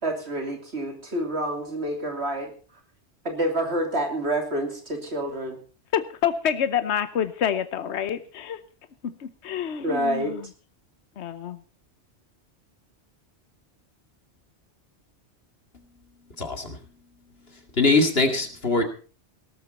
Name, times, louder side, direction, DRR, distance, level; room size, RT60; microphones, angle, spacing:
voice 1, 0.0-2.5 3.2-5.6 9.8-10.3, right 1 dB, 65° right, 4 dB, 3.2 m, -28 dB
voice 2, 5.9-8.6 9.0-10.5 11.2-11.6, left 8 dB, 75° left, 12 dB, 1.1 m, -27 dB
voice 3, 16.4-16.8 17.7-18.8, left 3 dB, 60° left, 5 dB, 2.3 m, -22 dB
18.0 x 13.0 x 4.2 m, 0.38 s
omnidirectional pair, 1.2 m